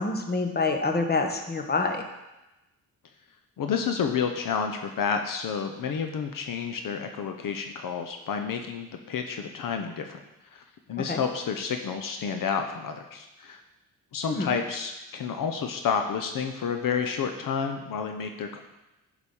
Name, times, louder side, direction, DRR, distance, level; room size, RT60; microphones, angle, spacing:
voice 1, 0.0-2.0 11.1-11.2 14.3-14.5, left 3 dB, 30° left, 4 dB, 1.3 m, -26 dB
voice 2, 3.6-10.2 10.5-10.6 10.9-13.6 14.1-18.6, left 6 dB, 70° left, 5 dB, 0.9 m, -30 dB
9.7 x 5.1 x 5.5 m, 0.98 s
cardioid pair, 85°, 35 cm